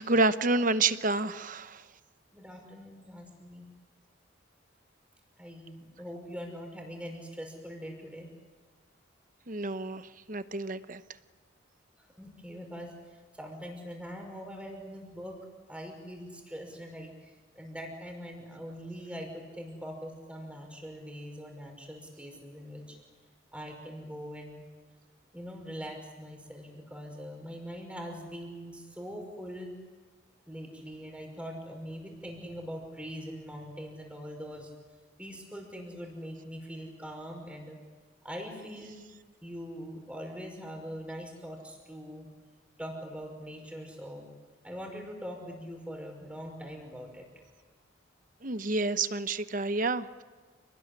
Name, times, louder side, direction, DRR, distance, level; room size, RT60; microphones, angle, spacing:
voice 1, 0.0-1.8 9.5-11.0 48.4-50.2, right 3 dB, 45° right, 12 dB, 0.9 m, -29 dB
voice 2, 2.3-3.7 5.4-8.3 12.2-15.4 15.7-23.0 23.5-24.6 25.3-29.7 30.5-34.7 35.2-37.8 38.2-39.0 39.4-42.3 42.8-44.3 44.6-47.3, equal, 5° right, 2 dB, 5.7 m, -42 dB
29.0 x 20.0 x 9.9 m, 1.4 s
head